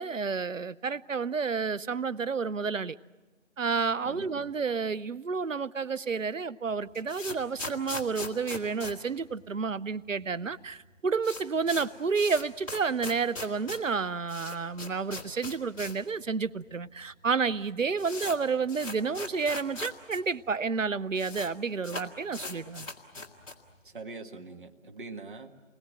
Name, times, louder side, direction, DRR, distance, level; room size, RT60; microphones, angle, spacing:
voice 1, 0.0-3.0 3.6-22.9, right 5 dB, 85° right, 17 dB, 0.9 m, -30 dB
voice 2, 4.0-4.5 23.8-25.5, right 3 dB, 40° right, 4 dB, 1.8 m, -43 dB
sound 1, 6.7-9.9 10.2-10.3 10.5-10.6 10.9-16.1 16.4-16.5 17.2-17.3 17.5-20.2 20.5-20.6 20.8-21.5 21.8-23.7, left 3 dB, 25° left, 2.2 m, -40 dB
29.5 x 21.5 x 7.7 m, 1.2 s
figure-of-eight pair, 160°, 38 cm